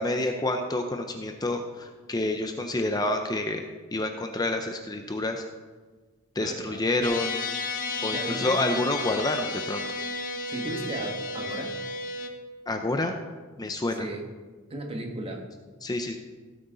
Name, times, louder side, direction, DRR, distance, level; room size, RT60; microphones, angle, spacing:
voice 1, 0.0-3.6 3.9-5.4 6.4-7.4 8.0-9.8 12.7-13.1 13.6-14.1 15.8-16.2, left 2 dB, 20° left, 5 dB, 0.6 m, -28 dB
voice 2, 6.4-6.8 8.1-8.5 10.5-11.8 13.9-14.3 14.7-15.5, right 2 dB, 25° right, 2 dB, 1.6 m, -35 dB
sound 1, 7.0-12.3, left 3 dB, 40° left, 1.1 m, -32 dB
16.5 x 8.5 x 4.0 m, 1.4 s
head